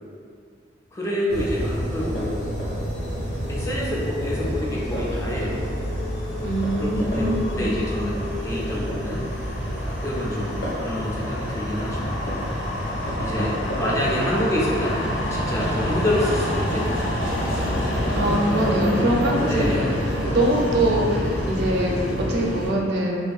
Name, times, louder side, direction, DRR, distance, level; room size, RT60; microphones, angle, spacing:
voice 1, 0.9-2.5 3.5-5.7 6.8-9.3 10.0-12.5 13.2-17.3 18.8-19.1 19.5-19.9, left 1 dB, 15° left, -5 dB, 0.3 m, -27 dB
sound 1, 1.3-18.4, equal, 60° left, 0.8 m, -30 dB
sound 2, 2.9-22.7, left 1 dB, 90° left, 0.8 m, -28 dB
voice 2, 6.4-7.6 18.1-19.8 20.2-23.2, right 1 dB, 60° right, -1 dB, 0.4 m, -23 dB
2.5 x 2.4 x 2.3 m, 2.2 s
head